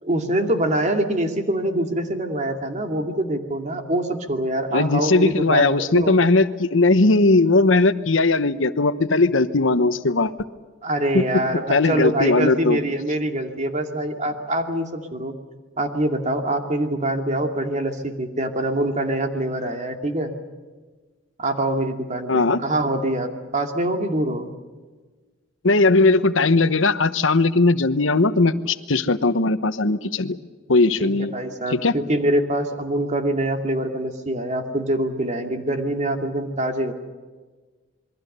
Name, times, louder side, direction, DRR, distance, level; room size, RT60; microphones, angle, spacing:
voice 1, 0.0-6.1 10.8-15.4 15.8-20.3 21.4-24.5 31.0-36.9, right 1 dB, 40° right, 5 dB, 2.5 m, -24 dB
voice 2, 4.7-10.3 11.1-11.2 11.7-12.8 22.3-22.6 25.6-30.4 30.7-31.3 31.7-31.9, left 3 dB, 85° left, 13 dB, 1.0 m, -18 dB
27.5 x 22.0 x 6.8 m, 1.4 s
head